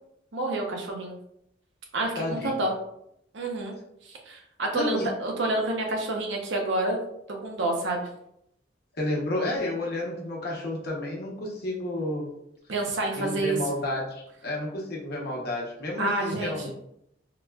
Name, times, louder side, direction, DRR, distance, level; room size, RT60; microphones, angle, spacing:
voice 1, 0.3-1.2 1.9-2.7 3.3-3.8 4.0-7.0 7.4-8.1 12.7-13.6 16.0-16.7, right 2 dB, 75° right, 1 dB, 0.6 m, -28 dB
voice 2, 2.2-2.6 4.7-5.1 9.0-12.3 13.2-16.7, left 1 dB, 55° left, -2 dB, 0.8 m, -31 dB
4.0 x 2.1 x 2.3 m, 0.76 s
head